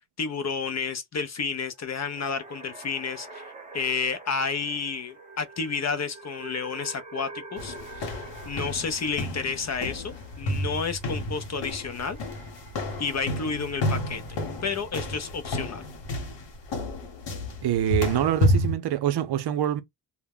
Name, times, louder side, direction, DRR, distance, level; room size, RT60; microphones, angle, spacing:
voice 1, 0.2-3.5 3.7-12.2 13.0-15.8, left 5 dB, 40° left, 0.5 m, -31 dB
sound 1, 1.7-15.1, right 2 dB, 15° right, 0.8 m, -47 dB
sound 2, 7.6-18.8, left 1 dB, 70° left, 1.1 m, -30 dB
voice 2, 17.6-19.8, right 11 dB, 60° right, 0.5 m, -25 dB
2.1 x 2.1 x 3.5 m
cardioid pair, 85°, 45 cm